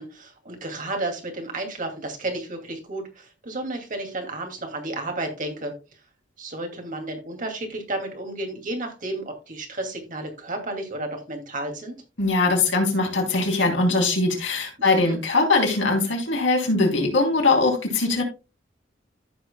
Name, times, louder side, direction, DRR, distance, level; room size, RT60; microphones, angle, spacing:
voice 1, 0.0-5.7 6.4-12.0 14.8-15.2, right 2 dB, 45° right, 3 dB, 2.5 m, -32 dB
voice 2, 12.2-18.2, left 3 dB, 70° left, 1 dB, 3.3 m, -21 dB
14.0 x 6.3 x 2.3 m, 0.30 s
head